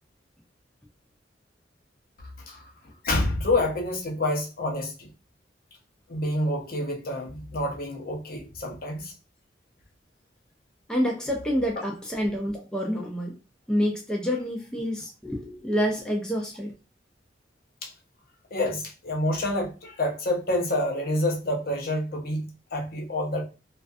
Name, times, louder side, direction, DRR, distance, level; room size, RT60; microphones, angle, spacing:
voice 1, 2.2-5.1 6.1-9.1 17.8-17.9 18.5-23.4, left 1 dB, 50° left, 0.6 m, -28 dB
voice 2, 10.9-13.3 13.7-16.7, equal, 5° left, 0.4 m, -28 dB
2.5 x 2.3 x 2.4 m
head